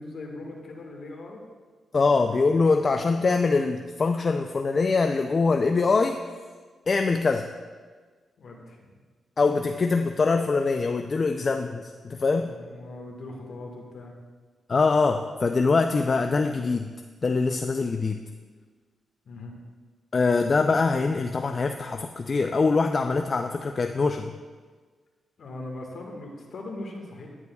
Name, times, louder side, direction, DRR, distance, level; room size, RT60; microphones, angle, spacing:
voice 1, 0.0-1.4 2.0-3.2 8.4-8.9 12.3-14.1 19.2-19.5 25.4-27.4, left 2 dB, 65° left, 0 dB, 1.5 m, -40 dB
voice 2, 1.9-6.2 6.9-7.5 9.4-12.5 14.7-16.9 17.2-18.2 20.1-24.3, left 4 dB, 45° left, 5 dB, 0.4 m, -23 dB
9.6 x 9.5 x 2.3 m, 1.5 s
cardioid pair, 80°, 0 cm